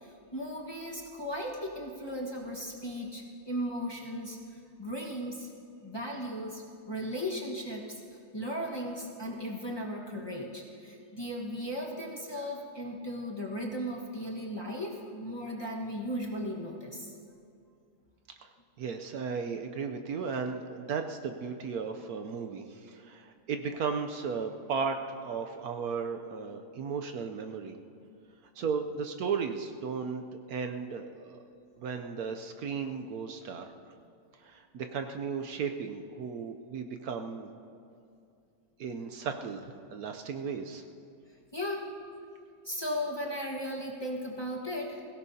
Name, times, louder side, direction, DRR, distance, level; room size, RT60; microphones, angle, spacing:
voice 1, 0.0-4.4 4.8-5.5 5.8-8.0 8.3-17.1 41.5-41.9 42.6-45.0, equal, 15° left, -3 dB, 1.3 m, -36 dB
voice 2, 18.8-27.8 28.6-31.4 31.8-33.7 34.4-37.5 38.8-40.8, right 5 dB, 70° right, 5 dB, 1.1 m, -35 dB
22.0 x 16.5 x 2.8 m, 2.5 s
omnidirectional pair, 1.7 m